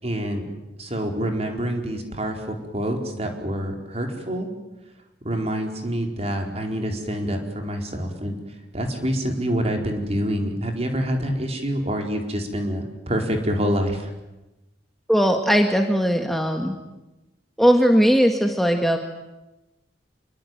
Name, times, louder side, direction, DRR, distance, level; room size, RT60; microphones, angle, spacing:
voice 1, 0.0-4.5 5.2-8.3 8.7-14.1, equal, 35° right, 3 dB, 4.6 m, -26 dB
voice 2, 15.1-16.8 17.6-19.0, equal, ahead, 3 dB, 1.8 m, -19 dB
27.5 x 22.5 x 9.4 m, 1.0 s
head